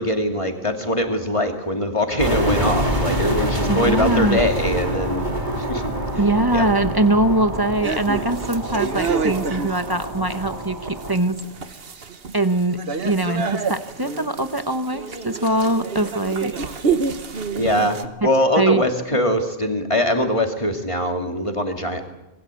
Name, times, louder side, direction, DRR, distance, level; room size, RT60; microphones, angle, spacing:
voice 1, 0.0-5.2 5.6-5.8 6.1-6.7 17.6-22.1, left 1 dB, 30° left, 4 dB, 2.7 m, -22 dB
sound 1, 2.2-11.1, right 1 dB, 45° right, 3.7 m, -26 dB
voice 2, 3.7-4.4 6.2-11.4 12.3-16.5 18.6-18.8, right 2 dB, 20° right, 9 dB, 1.2 m, -22 dB
sound 2, 7.8-18.1, right 5 dB, 65° right, 1.5 m, -28 dB
26.0 x 21.0 x 8.4 m, 0.92 s
omnidirectional pair, 1.1 m